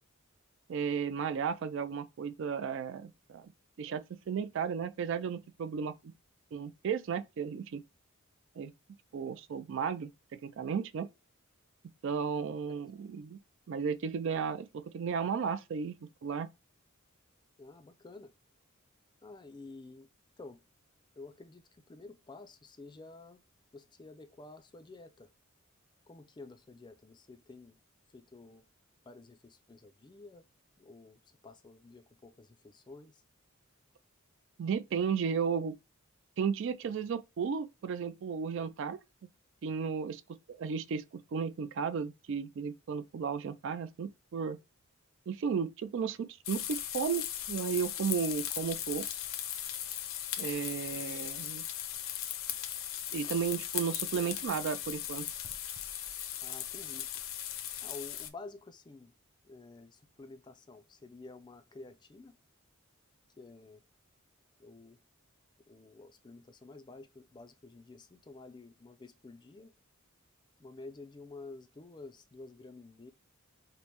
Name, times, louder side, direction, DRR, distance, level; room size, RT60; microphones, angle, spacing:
voice 1, 0.7-3.5 3.8-5.9 6.5-7.8 8.6-8.7 9.1-11.1 12.0-13.4 13.7-16.0 16.2-16.5 34.6-35.8 36.4-39.0 39.6-40.2 40.5-44.6 45.3-49.0 50.4-51.6 53.1-55.3, right 6 dB, 60° right, 0.3 m, -34 dB
voice 2, 17.6-18.3 19.2-20.1 20.4-20.6 21.2-23.4 23.7-25.3 26.1-27.8 28.1-28.6 29.1-30.4 30.8-33.2 53.2-53.4 56.4-57.1 57.8-59.1 59.4-62.4 63.4-63.8 64.6-65.0 65.7-69.7 70.6-73.1, left 3 dB, 20° left, 0.3 m, -51 dB
sound 1, 46.4-58.3, left 11 dB, 65° left, 0.6 m, -38 dB
5.1 x 2.1 x 2.9 m
head